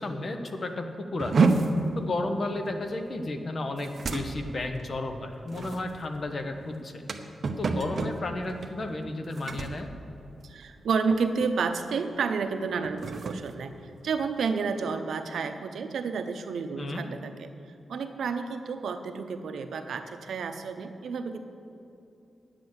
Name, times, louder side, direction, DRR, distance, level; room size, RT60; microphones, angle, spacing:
voice 1, 0.0-1.3 2.0-7.0 7.6-9.9 16.8-17.0, left 2 dB, 45° left, 6 dB, 1.0 m, -33 dB
sound 1, 1.2-10.8 11.1-11.5 11.9-12.1 12.7-14.6, right 3 dB, 50° right, 0.8 m, -31 dB
voice 2, 10.4-13.7 14.0-17.5 17.9-21.4, right 5 dB, 85° right, 7 dB, 0.7 m, -30 dB
10.0 x 7.6 x 7.9 m, 2.7 s
wide cardioid pair, 125°, 0 cm